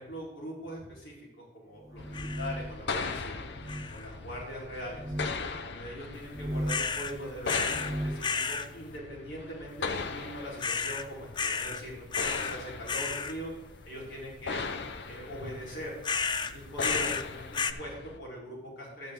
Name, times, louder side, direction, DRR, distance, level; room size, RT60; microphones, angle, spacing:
voice 1, 0.0-3.4 3.9-5.1 5.5-13.5 13.8-14.6 15.0-15.9 16.5-19.1, equal, 85° left, -4 dB, 4.3 m, -41 dB
sound 1, 1.8-2.8 3.5-3.9 4.9-5.3 6.2-6.9 7.6-8.3, right 1 dB, 20° right, 0.6 m, -36 dB
sound 2, 2.0-18.2, left 4 dB, 65° left, 0.7 m, -39 dB
sound 3, 2.1-2.5 2.9-3.3 3.7-4.1 6.7-7.1 7.5-7.9 8.2-8.7 10.6-11.1 11.4-11.8 12.1-12.6 12.9-13.3 16.0-17.3 17.5-17.7, left 5 dB, 25° left, 0.4 m, -32 dB
12.5 x 8.9 x 3.7 m, 0.96 s
head